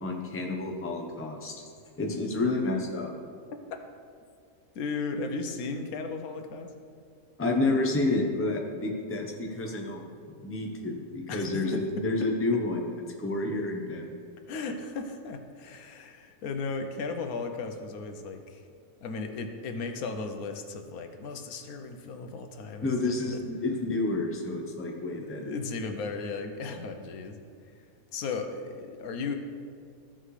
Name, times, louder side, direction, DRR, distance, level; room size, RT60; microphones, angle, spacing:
voice 1, 0.0-1.6 2.0-3.1 7.4-10.0 10.4-12.8 13.2-14.1 22.8-25.6, left 2 dB, 10° left, 1 dB, 0.7 m, -29 dB
voice 2, 4.7-6.7 11.3-11.8 14.5-18.6 19.0-23.4 25.0-27.4 27.8-27.9 28.1-29.3, left 4 dB, 85° left, 5 dB, 1.2 m, -36 dB
14.0 x 5.7 x 3.2 m, 2.2 s
omnidirectional pair, 1.5 m